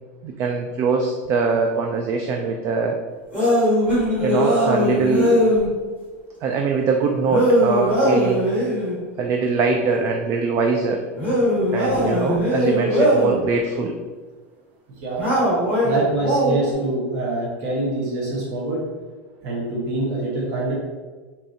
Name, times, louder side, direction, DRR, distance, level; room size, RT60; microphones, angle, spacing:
voice 1, 0.2-3.0 4.2-5.4 6.4-8.4 9.2-11.0 11.7-13.9, right 4 dB, 35° right, 3 dB, 0.3 m, -22 dB
sound 1, 3.3-5.7 7.3-9.0 11.2-13.4 15.2-16.7, equal, 20° right, 1.5 m, -20 dB
voice 2, 15.8-18.8 19.4-20.7, right 2 dB, 50° right, -5 dB, 1.1 m, -25 dB
4.5 x 2.7 x 2.7 m, 1.4 s
supercardioid pair, 140°, 8 cm